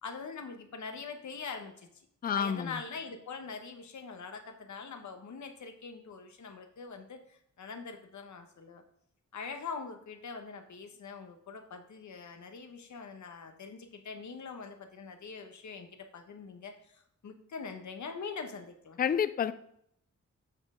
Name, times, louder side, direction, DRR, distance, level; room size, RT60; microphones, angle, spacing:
voice 1, 0.0-8.8 9.3-19.0, left 5 dB, 70° left, 5 dB, 1.1 m, -43 dB
voice 2, 2.2-2.8 19.0-19.5, left 7 dB, 30° left, 13 dB, 0.4 m, -29 dB
8.0 x 6.1 x 3.7 m, 0.72 s
wide cardioid pair, 100°, 30 cm